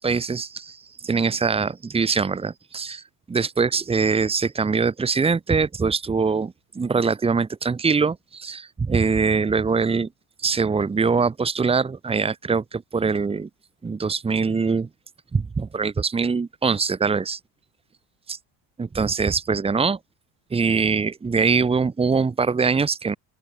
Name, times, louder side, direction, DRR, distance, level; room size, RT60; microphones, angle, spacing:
voice 1, 0.0-10.1 10.4-13.5 13.8-14.9 15.3-17.4 18.3-18.4 18.8-20.0 20.5-23.2, right 5 dB, 15° right, 3.3 m, -23 dB
open air
cardioid pair, 155°, 41 cm